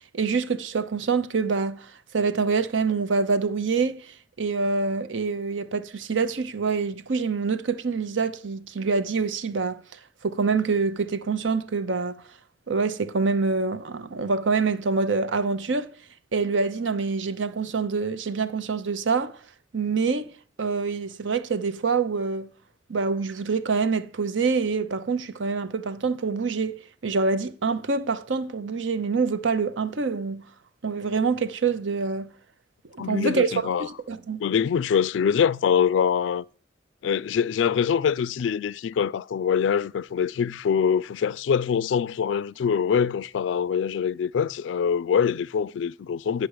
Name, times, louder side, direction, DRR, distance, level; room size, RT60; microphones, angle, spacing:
voice 1, 0.1-9.8 10.2-12.2 12.7-15.9 16.3-19.4 19.7-20.3 20.6-22.5 22.9-30.4 30.8-32.3 33.0-34.4, right 4 dB, 80° right, 0.7 m, -26 dB
voice 2, 33.0-33.9 34.4-36.5 37.0-46.5, left 7 dB, 80° left, 0.3 m, -24 dB
10.5 x 6.7 x 4.8 m
head